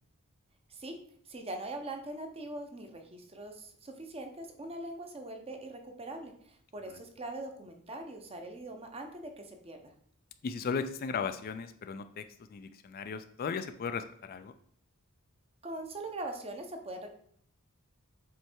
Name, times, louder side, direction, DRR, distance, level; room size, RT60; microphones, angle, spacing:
voice 1, 1.3-9.8 15.6-17.1, right 2 dB, 25° right, 4 dB, 0.8 m, -42 dB
voice 2, 10.4-12.2 12.5-14.5, left 5 dB, 40° left, 9 dB, 0.4 m, -36 dB
7.5 x 3.3 x 4.5 m, 0.62 s
head